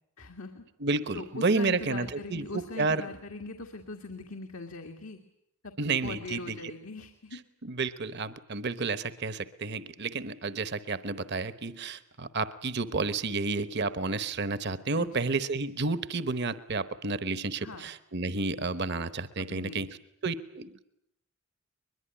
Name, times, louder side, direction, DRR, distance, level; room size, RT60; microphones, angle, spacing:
voice 1, 0.2-0.6 1.1-5.2 5.9-7.4 15.0-15.2 17.6-17.9 19.4-19.9, left 3 dB, 75° left, 4 dB, 2.0 m, -41 dB
voice 2, 0.8-3.0 5.8-6.6 7.6-20.0 20.2-20.8, right 3 dB, 50° right, 14 dB, 1.0 m, -31 dB
22.0 x 22.0 x 9.9 m, 0.79 s
head